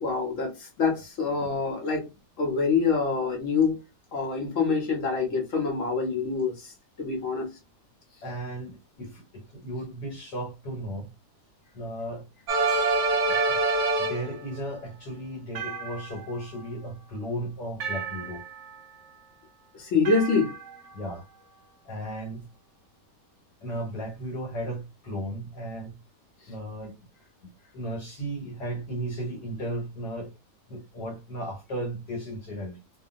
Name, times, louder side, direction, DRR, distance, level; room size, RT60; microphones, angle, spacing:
voice 1, 0.0-2.1 2.4-3.8 4.1-7.5 19.7-20.5, left 5 dB, 55° left, 1.1 m, -26 dB
voice 2, 8.2-11.1 11.7-12.2 13.2-13.6 14.0-18.4 20.9-21.2 21.8-22.5 23.6-26.0 26.5-26.9 27.4-30.3 30.7-32.8, right 1 dB, 75° left, 1.6 m, -35 dB
sound 1, 12.5-14.4 15.5-16.4 17.8-18.8 20.0-20.9, right 3 dB, 55° right, 0.9 m, -27 dB
2.7 x 2.7 x 2.5 m
omnidirectional pair, 1.8 m